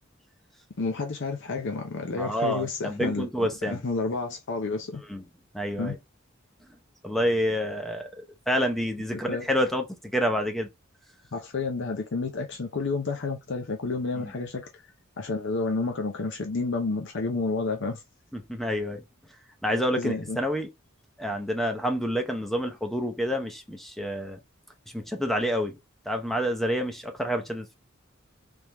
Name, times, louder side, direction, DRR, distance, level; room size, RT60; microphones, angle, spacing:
voice 1, 0.8-3.3 3.6-5.0 5.8-6.0 9.3-9.5 11.3-14.8 15.2-18.0 19.7-20.4, left 3 dB, 60° left, 0.6 m, -30 dB
voice 2, 2.2-3.8 5.1-5.2 5.5-6.0 7.0-8.1 8.5-9.8 10.1-10.7 14.1-14.3 18.3-19.0 19.6-20.7 21.2-24.4 24.9-25.8 26.1-27.8, equal, ahead, 0.7 m, -28 dB
3.5 x 3.3 x 2.9 m
head